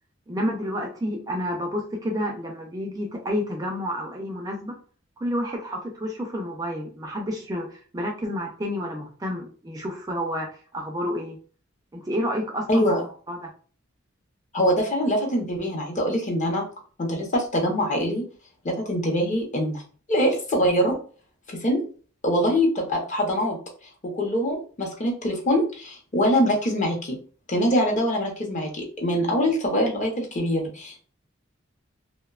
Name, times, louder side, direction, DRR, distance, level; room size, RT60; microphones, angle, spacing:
voice 1, 0.3-4.8 5.2-11.4 11.9-12.9 13.3-13.5, equal, 20° right, 1 dB, 0.4 m, -30 dB
voice 2, 12.7-13.0 14.5-16.6 17.0-18.2 18.6-19.8 20.1-20.9 21.5-21.8 22.2-23.6 24.1-27.2 27.5-31.0, equal, 40° left, 1 dB, 0.7 m, -23 dB
2.6 x 2.1 x 2.3 m, 0.41 s
head